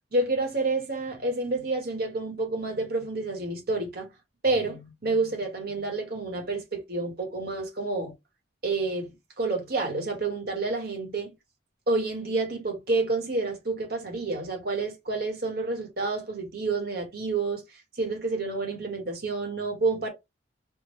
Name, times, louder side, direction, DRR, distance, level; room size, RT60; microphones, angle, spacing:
voice 1, 0.1-4.1 4.4-8.1 8.6-11.3 11.9-17.6 17.9-20.1, right 3 dB, 50° right, 1.2 m, -29 dB
3.7 x 2.1 x 3.0 m
head